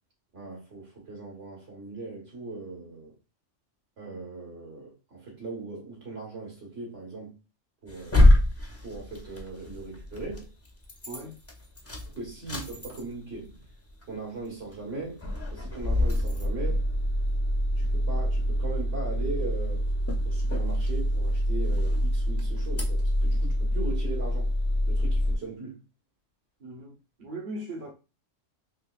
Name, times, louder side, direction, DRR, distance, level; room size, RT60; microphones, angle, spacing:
voice 1, 0.3-3.1 4.0-7.4 7.8-8.2 8.8-10.5 12.0-13.6 14.1-15.2 15.5-16.9 17.8-19.9 20.2-24.5 24.9-25.8, right 3 dB, 70° right, 1.9 m, -39 dB
sound 1, 7.9-10.4 10.8-11.2 11.5-13.3 13.7-13.8 14.0-14.1 14.7-14.9 15.2-25.4, left 1 dB, 20° left, 0.4 m, -25 dB
voice 2, 11.1-11.4 26.6-27.9, right 2 dB, 45° right, 0.9 m, -39 dB
3.8 x 2.9 x 2.4 m
omnidirectional pair, 1.3 m